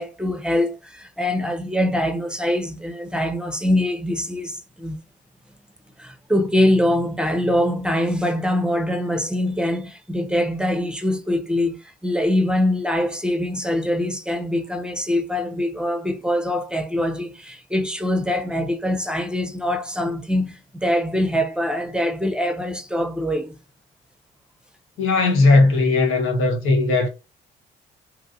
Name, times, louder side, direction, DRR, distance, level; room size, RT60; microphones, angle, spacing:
voice 1, 0.0-5.0 6.0-23.6, left 1 dB, 5° right, 0.7 m, -23 dB
voice 2, 25.0-27.1, left 3 dB, 85° left, 1.0 m, -17 dB
3.0 x 2.4 x 2.6 m
supercardioid pair, 65°, 20 cm